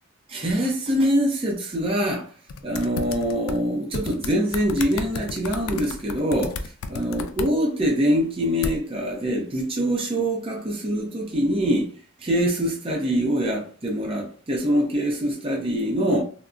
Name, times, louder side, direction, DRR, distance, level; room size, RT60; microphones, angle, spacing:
voice 1, 0.3-2.3 2.6-11.9 12.2-16.2, equal, 25° right, 0.5 m, -24 dB
sound 1, 2.5-3.6 3.9-7.5 8.6-8.8, left 4 dB, 80° left, 0.4 m, -32 dB
3.6 x 2.0 x 2.4 m
head